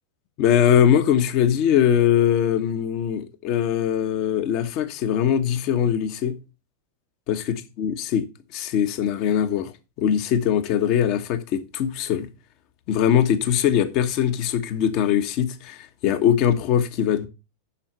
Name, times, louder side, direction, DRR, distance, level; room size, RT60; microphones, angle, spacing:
voice 1, 0.4-6.4 7.3-8.3 8.5-9.7 10.0-12.3 12.9-17.3, left 9 dB, 40° left, 1.3 m, -21 dB
7.3 x 6.6 x 6.8 m
figure-of-eight pair, 90°, 0 cm